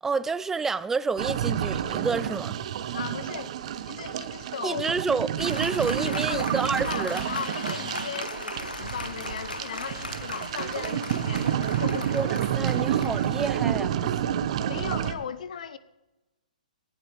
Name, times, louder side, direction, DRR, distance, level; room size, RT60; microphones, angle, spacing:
voice 1, 0.0-2.6 4.6-7.2 12.1-14.2, right 4 dB, 10° right, 0.4 m, -29 dB
sound 1, 1.2-15.1, right 10 dB, 50° right, 1.2 m, -29 dB
voice 2, 2.9-3.6 3.9-4.9 6.1-6.5 6.9-12.1 14.7-15.8, left 7 dB, 60° left, 0.8 m, -37 dB
Applause, 5.4-14.4, left 2 dB, 85° left, 1.5 m, -38 dB
27.5 x 11.5 x 3.4 m
figure-of-eight pair, 125°, 5 cm